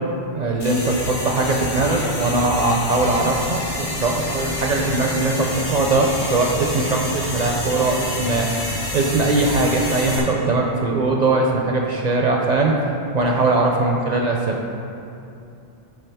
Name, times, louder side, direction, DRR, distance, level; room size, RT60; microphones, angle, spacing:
voice 1, 0.3-12.7 13.1-14.6, right 2 dB, 55° right, 0 dB, 0.5 m, -20 dB
sound 1, 0.6-10.2, left 1 dB, 75° left, 1.5 m, -28 dB
10.0 x 3.6 x 3.4 m, 2.7 s
omnidirectional pair, 1.1 m